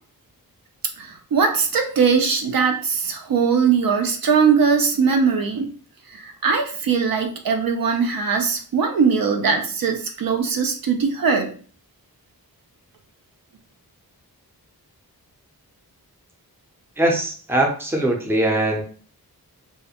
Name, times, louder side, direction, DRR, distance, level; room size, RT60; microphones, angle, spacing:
voice 1, 1.0-5.7 6.1-11.5, right 5 dB, 65° right, 4 dB, 0.5 m, -20 dB
voice 2, 17.0-18.8, right 1 dB, 5° right, 0 dB, 0.5 m, -21 dB
2.4 x 2.1 x 2.8 m, 0.43 s
wide cardioid pair, 85°, 37 cm